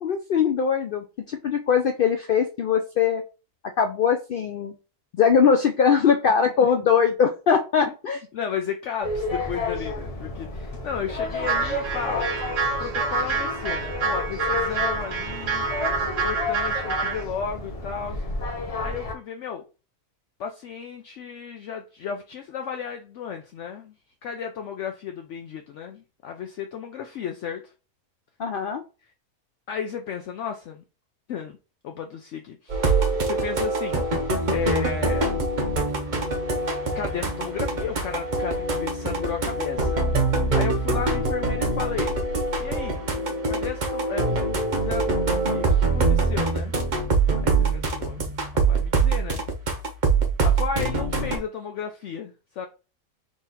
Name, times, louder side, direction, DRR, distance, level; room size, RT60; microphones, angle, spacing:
voice 1, 0.0-3.2 3.8-4.7 5.1-8.2 28.4-28.8, left 6 dB, 90° left, 0.4 m, -21 dB
voice 2, 8.3-12.3 12.8-15.7 16.2-18.2 18.7-19.6 20.4-23.9 24.2-27.7 29.7-30.8 31.3-31.6 31.8-35.4 36.9-42.1 42.6-43.0 43.4-44.5 44.8-46.7 47.4-49.4 50.4-52.7, left 7 dB, 65° left, 0.8 m, -33 dB
sound 1, 9.0-19.1, left 2 dB, 30° left, 0.8 m, -31 dB
sound 2, 11.4-17.2, right 4 dB, 65° right, 1.3 m, -27 dB
sound 3, 32.7-51.4, right 3 dB, 40° right, 0.8 m, -24 dB
3.9 x 3.1 x 4.1 m
omnidirectional pair, 1.5 m